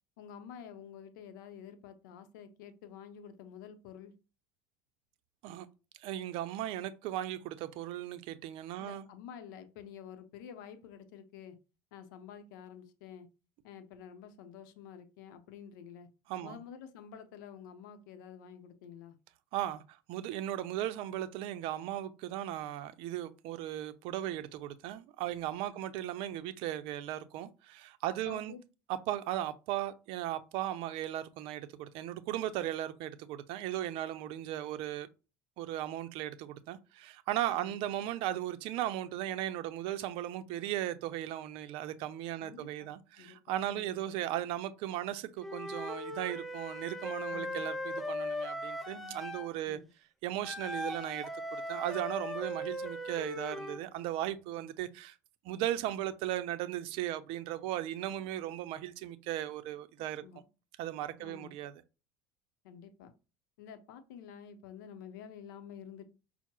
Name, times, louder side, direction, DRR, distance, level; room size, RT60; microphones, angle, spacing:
voice 1, 0.2-4.1 8.8-11.6 11.9-13.3 13.6-16.1 16.4-19.2 25.7-25.9 28.3-28.6 37.5-37.8 42.4-43.9 47.3-47.7 49.7-49.9 54.6-54.7 60.0-60.4 61.2-61.6 62.6-63.1 63.6-66.0, left 8 dB, 75° left, 0.7 m, -50 dB
voice 2, 6.0-9.1 16.3-16.6 19.5-28.6 28.9-35.1 35.6-49.8 50.2-51.3 51.5-55.2 55.4-60.2 60.8-61.7, right 13 dB, 60° right, 0.5 m, -37 dB
Wind instrument woodwind instrument, 45.4-49.5 50.4-53.8, left 1 dB, ahead, 0.6 m, -39 dB
5.7 x 2.1 x 2.9 m
hypercardioid pair, 80°, 10 cm